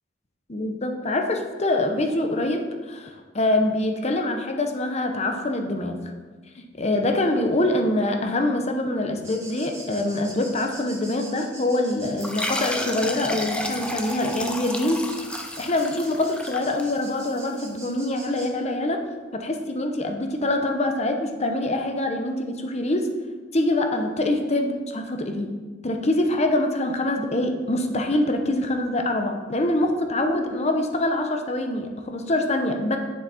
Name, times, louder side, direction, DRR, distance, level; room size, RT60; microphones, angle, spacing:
voice 1, 0.5-6.0 6.6-19.0 19.3-23.1 23.5-25.5 25.8-33.0, left 1 dB, 35° left, 4 dB, 0.9 m, -25 dB
sound 1, 9.2-18.5, right 2 dB, 15° right, 1.9 m, -44 dB
sound 2, 12.2-17.3, left 1 dB, 5° left, 0.6 m, -31 dB
9.1 x 7.3 x 4.3 m, 1.4 s
head